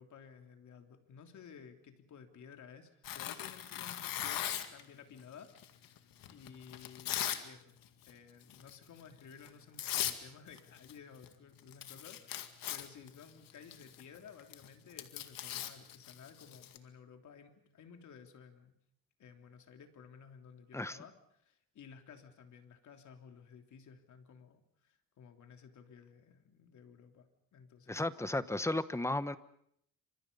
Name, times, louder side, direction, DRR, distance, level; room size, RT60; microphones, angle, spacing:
voice 1, 0.0-5.9 6.3-7.7 8.0-18.7 19.2-28.1, left 6 dB, 55° left, 5 dB, 3.4 m, -55 dB
Tearing, 3.0-4.8 5.6-7.4 7.8-8.1 8.5-8.8 9.4-9.5 9.8-10.2 10.5-11.3 11.6-16.8, left 11 dB, 75° left, 2.1 m, -39 dB
voice 2, 27.9-29.4, left 2 dB, 10° left, 13 dB, 1.1 m, -34 dB
28.5 x 26.0 x 5.5 m, 0.72 s
cardioid pair, 120°, 34 cm